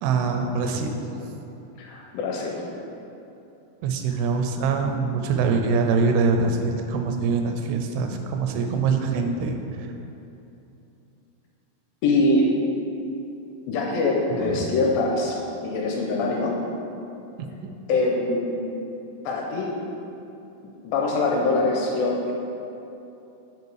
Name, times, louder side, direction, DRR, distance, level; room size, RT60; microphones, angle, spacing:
voice 1, 0.0-1.3 3.8-9.6 14.3-14.7, right 4 dB, 85° right, 4 dB, 2.5 m, -24 dB
voice 2, 1.8-2.6 12.0-12.5 13.7-15.4 15.6-16.6 17.9-18.6 19.3-19.7 20.8-22.3, left 2 dB, 80° left, -1 dB, 2.3 m, -23 dB
6.8 x 5.0 x 4.7 m, 2.9 s
omnidirectional pair, 4.5 m